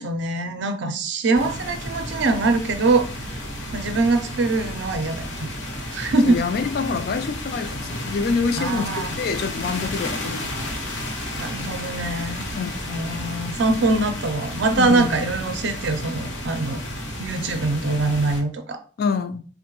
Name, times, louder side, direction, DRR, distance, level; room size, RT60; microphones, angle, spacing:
voice 1, 0.0-3.1 3.7-5.3 5.9-6.4 8.6-9.1 11.4-12.5 12.9-16.8 17.2-18.8, right 3 dB, 65° right, 0.5 m, -23 dB
sound 1, 1.3-18.4, left 1 dB, 85° left, 1.0 m, -32 dB
voice 2, 6.3-8.9 9.2-10.5 12.5-12.8 14.8-15.2 19.0-19.5, left 5 dB, 50° left, 0.3 m, -26 dB
3.5 x 2.1 x 2.9 m
head